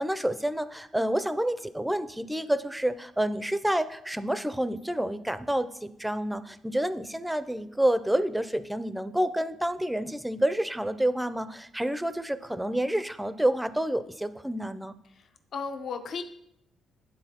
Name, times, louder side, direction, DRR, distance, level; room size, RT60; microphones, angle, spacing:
voice 1, 0.0-15.0, right 1 dB, 5° right, 12 dB, 0.4 m, -28 dB
voice 2, 15.1-16.2, left 5 dB, 60° left, 7 dB, 0.5 m, -35 dB
11.0 x 3.9 x 2.9 m, 0.77 s
cardioid pair, 90°, 0 cm